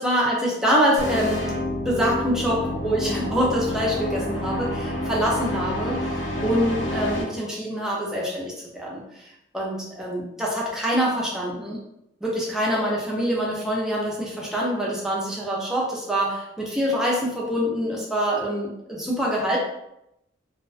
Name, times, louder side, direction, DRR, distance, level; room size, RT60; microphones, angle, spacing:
voice 1, 0.0-11.8 12.2-19.6, equal, 5° right, -4 dB, 0.4 m, -25 dB
sound 1, 1.0-7.2, left 1 dB, 70° left, 0.5 m, -28 dB
2.5 x 2.1 x 2.4 m, 0.83 s
head